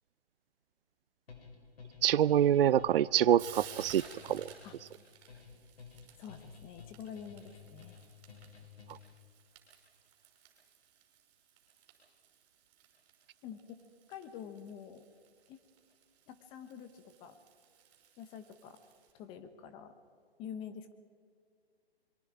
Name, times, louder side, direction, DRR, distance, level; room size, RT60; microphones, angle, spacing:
sound 1, 1.3-9.2, left 5 dB, 65° left, 5.5 m, -53 dB
voice 1, 2.0-4.0 4.3-4.5, right 10 dB, 60° right, 0.4 m, -25 dB
Frying (food), 2.2-19.1, right 9 dB, 30° right, 5.8 m, -56 dB
voice 2, 6.2-8.0 13.4-13.8 14.1-15.0 15.5-15.6 16.3-17.4 18.2-18.8 19.1-19.9 20.4-20.9, left 8 dB, 15° left, 1.0 m, -47 dB
25.5 x 23.5 x 4.9 m
hypercardioid pair, 150°, 33 cm